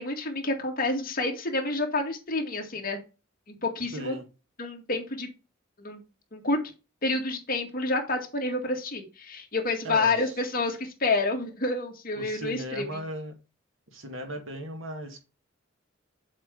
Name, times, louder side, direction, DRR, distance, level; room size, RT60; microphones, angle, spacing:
voice 1, 0.0-3.0 3.5-4.2 4.6-5.3 5.8-6.0 6.3-6.6 7.0-12.8, left 2 dB, 50° left, 2 dB, 2.0 m, -29 dB
voice 2, 3.9-4.2 9.8-10.4 12.2-13.3 13.9-15.2, right 1 dB, 90° right, 5 dB, 2.0 m, -37 dB
7.2 x 4.6 x 5.2 m, 0.30 s
head